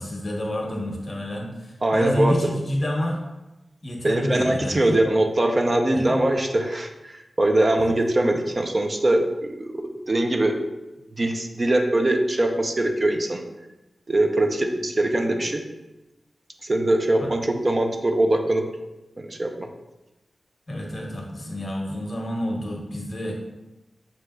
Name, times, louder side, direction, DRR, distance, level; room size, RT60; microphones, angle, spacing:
voice 1, 0.0-3.2 3.8-5.0 5.9-6.2 17.2-17.3 20.7-23.3, equal, 45° left, 0 dB, 0.9 m, -28 dB
voice 2, 1.8-2.4 4.0-9.3 9.6-10.5 11.2-13.4 14.1-15.6 16.6-18.6 19.2-19.7, right 1 dB, 35° right, 3 dB, 0.5 m, -22 dB
6.3 x 2.8 x 2.3 m, 1.0 s
wide cardioid pair, 80°, 0 cm